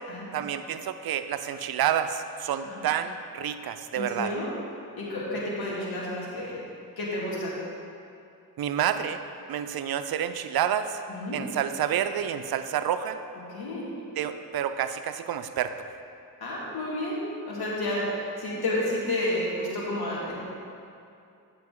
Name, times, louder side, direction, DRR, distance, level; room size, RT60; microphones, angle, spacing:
voice 1, 0.3-4.3 8.6-9.2 9.5-11.0 11.3-13.2 14.2-15.7, right 9 dB, 75° right, 10 dB, 0.5 m, -29 dB
voice 2, 3.9-4.5 5.0-6.6 7.0-7.5 11.1-11.4 13.5-13.9 16.4-17.2 17.4-20.4, left 1 dB, 80° left, -5 dB, 2.1 m, -31 dB
9.3 x 6.7 x 3.6 m, 2.5 s
cardioid pair, 60°, 37 cm